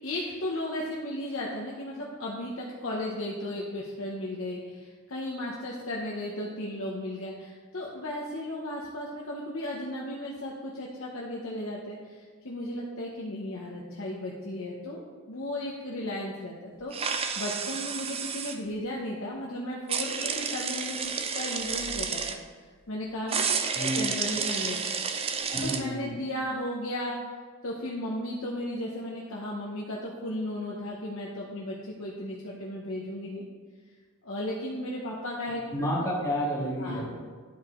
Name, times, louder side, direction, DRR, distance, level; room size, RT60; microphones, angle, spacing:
voice 1, 0.0-22.2 22.6-25.3 25.6-27.2 27.6-33.4 34.2-35.6 36.8-37.1, left 1 dB, 70° left, -3 dB, 0.9 m, -35 dB
sound 1, 16.9-18.6 19.9-22.4 23.3-25.8, right 6 dB, 25° right, 0.4 m, -31 dB
voice 2, 25.5-26.1 35.7-37.2, equal, 15° left, -6 dB, 1.8 m, -30 dB
11.0 x 4.7 x 3.7 m, 1.5 s
head